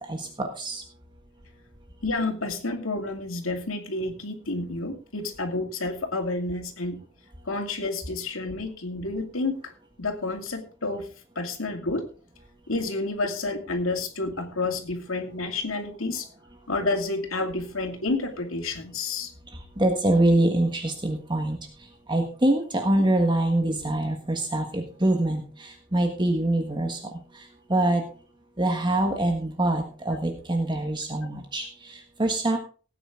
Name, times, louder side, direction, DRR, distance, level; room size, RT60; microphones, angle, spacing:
voice 1, 0.1-0.8 19.8-21.6 22.1-27.0 27.7-28.0 28.6-32.6, right 1 dB, 25° right, 4 dB, 1.5 m, -24 dB
voice 2, 2.0-7.0 7.5-9.7 10.0-11.1 11.4-12.1 12.7-16.3 16.7-19.3 23.0-23.1, left 2 dB, 90° left, 5 dB, 2.6 m, -30 dB
17.5 x 9.1 x 3.8 m, 0.39 s
head